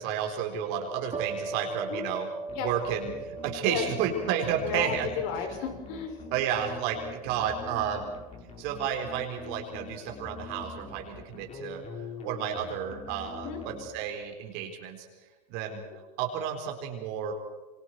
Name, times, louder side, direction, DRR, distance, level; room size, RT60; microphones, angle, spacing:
voice 1, 0.0-2.3 2.6-5.1 6.3-8.0 8.6-11.8 12.2-15.1 15.5-15.8 16.2-17.3, right 8 dB, 55° right, 3 dB, 4.1 m, -31 dB
sound 1, 1.1-8.6, right 3 dB, 30° right, 5.4 m, -41 dB
sound 2, 2.5-14.3, left 5 dB, 30° left, 4.7 m, -45 dB
voice 2, 4.6-6.2 13.4-13.6, left 7 dB, 60° left, 3 dB, 6.6 m, -33 dB
28.0 x 24.5 x 4.7 m, 1.2 s
hypercardioid pair, 105°, 21 cm